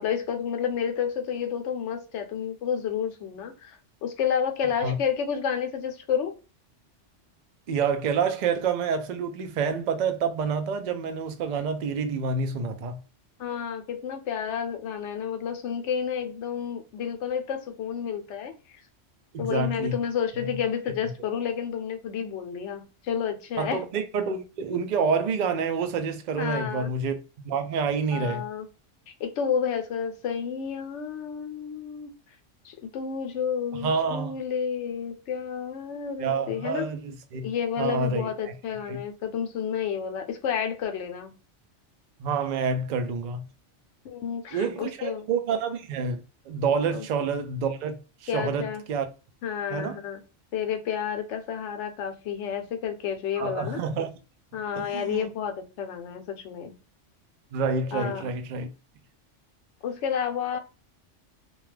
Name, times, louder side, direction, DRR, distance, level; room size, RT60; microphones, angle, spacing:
voice 1, 0.0-6.3 13.4-18.8 19.4-23.8 26.4-26.9 28.1-28.7 29.1-32.1 32.6-36.8 37.4-41.3 44.0-45.3 46.9-47.1 48.3-48.8 49.4-50.2 50.5-53.8 54.5-56.7 57.9-58.3 59.8-60.6, left 7 dB, 75° left, 0.9 m, -30 dB
voice 2, 7.7-13.0 19.3-20.0 20.4-20.5 23.6-28.5 33.8-34.3 36.2-37.5 37.8-38.5 38.9-39.0 42.2-43.4 44.5-47.9 48.2-49.1 49.7-50.0 53.4-54.1 54.7-55.3 57.5-58.7, right 5 dB, 65° right, 0.4 m, -28 dB
2.3 x 2.2 x 3.1 m
omnidirectional pair, 1.3 m